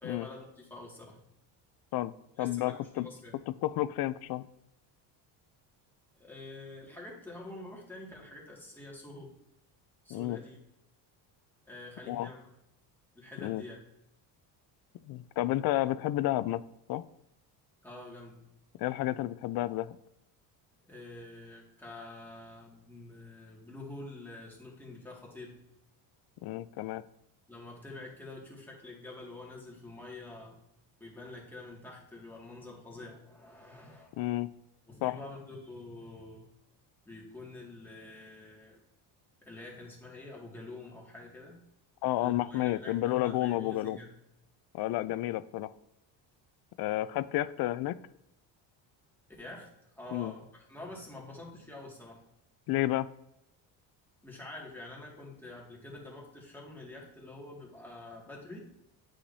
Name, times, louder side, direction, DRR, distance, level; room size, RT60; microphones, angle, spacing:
voice 1, 0.0-1.2 2.4-3.4 6.2-9.3 10.0-10.6 11.7-12.6 13.2-13.8 17.8-18.4 20.9-25.6 27.5-30.6 31.0-34.1 34.9-36.5 37.1-38.8 39.4-41.6 42.2-44.1 49.4-52.2 54.2-58.7, left 2 dB, 5° left, -3 dB, 2.0 m, -47 dB
voice 2, 2.4-3.1 3.6-4.5 10.1-10.4 12.1-12.3 13.4-13.6 15.0-16.6 16.9-17.0 18.8-20.0 26.4-27.0 34.2-34.5 35.0-35.1 42.0-44.0 44.7-45.7 46.8-48.0 50.1-50.3 52.7-53.1, left 15 dB, 55° left, 15 dB, 0.5 m, -31 dB
8.5 x 5.0 x 2.7 m, 0.84 s
cardioid pair, 125°, 45 cm